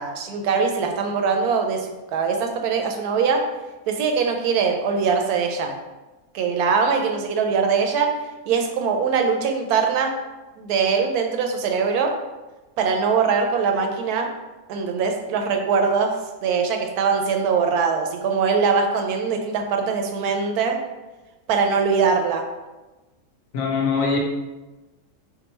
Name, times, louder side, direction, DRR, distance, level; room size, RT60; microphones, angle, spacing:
voice 1, 0.0-3.5 3.9-5.7 6.3-8.2 8.5-10.1 10.6-12.2 12.8-14.3 14.7-20.8 21.5-22.5, right 5 dB, 90° right, 4 dB, 1.1 m, -22 dB
voice 2, 23.5-24.2, left 5 dB, 70° left, -1 dB, 1.0 m, -22 dB
3.7 x 2.1 x 4.2 m, 1.1 s
omnidirectional pair, 1.6 m